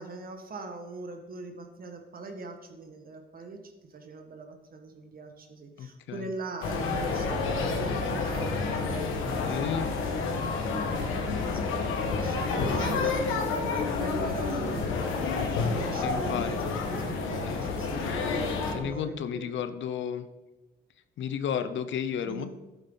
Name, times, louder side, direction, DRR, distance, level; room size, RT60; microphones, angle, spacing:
voice 1, 0.0-9.6 10.3-18.1 18.7-19.6 22.3-22.5, right 3 dB, 45° right, 5 dB, 1.8 m, -41 dB
voice 2, 5.8-6.3 9.4-9.9 12.6-12.9 16.0-16.6 17.5-17.6 18.7-20.3 21.2-22.5, left 8 dB, 70° left, 11 dB, 0.9 m, -33 dB
Crowds in Street in Seville, 6.6-18.7, left 4 dB, 90° left, 1.9 m, -29 dB
11.5 x 9.1 x 4.1 m, 1.1 s
cardioid pair, 90°, 20 cm